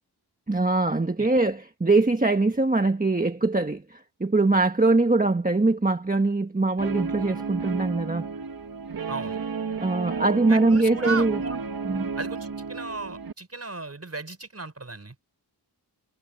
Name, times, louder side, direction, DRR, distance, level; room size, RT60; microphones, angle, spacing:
voice 1, 0.5-8.3 9.8-11.4 11.8-12.1, right 2 dB, 20° right, 1.3 m, -22 dB
Guitar, 6.8-13.3, right 5 dB, 55° right, 1.6 m, -32 dB
voice 2, 9.1-9.4 10.5-11.6 12.2-15.2, right 3 dB, 35° right, 5.3 m, -35 dB
wide cardioid pair, 115°, 42 cm